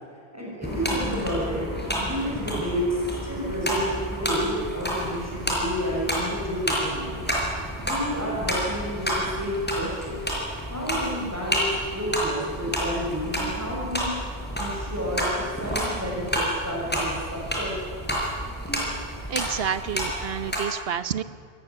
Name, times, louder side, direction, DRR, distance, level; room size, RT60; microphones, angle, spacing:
voice 1, 0.3-1.6 2.0-7.3 7.8-10.2 10.7-14.2 14.5-17.7, equal, 15° right, -4 dB, 6.5 m, -30 dB
sound 1, 0.6-20.6, equal, 10° left, 5.4 m, -30 dB
voice 2, 19.3-21.2, right 8 dB, 70° right, 14 dB, 1.1 m, -29 dB
27.0 x 15.0 x 9.8 m, 2.2 s
omnidirectional pair, 1.1 m